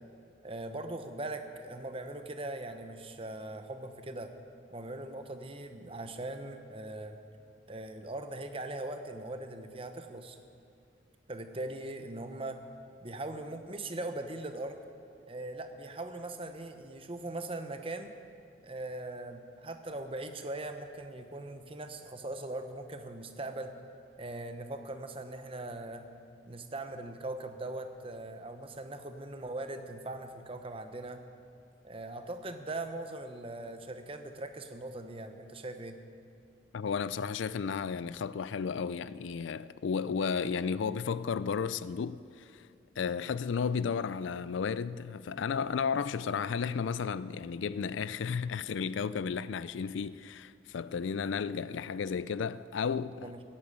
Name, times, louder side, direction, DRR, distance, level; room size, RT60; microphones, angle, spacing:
voice 1, 0.4-4.3 4.7-7.2 7.7-10.4 11.3-12.6 13.0-14.8 15.3-18.1 18.6-23.7 24.2-26.1 26.4-31.2 31.8-36.0 53.2-53.4, right 2 dB, 30° right, 0.9 m, -40 dB
voice 2, 36.7-42.6 43.0-53.3, left 6 dB, 70° left, 0.4 m, -33 dB
15.0 x 8.8 x 8.7 m
head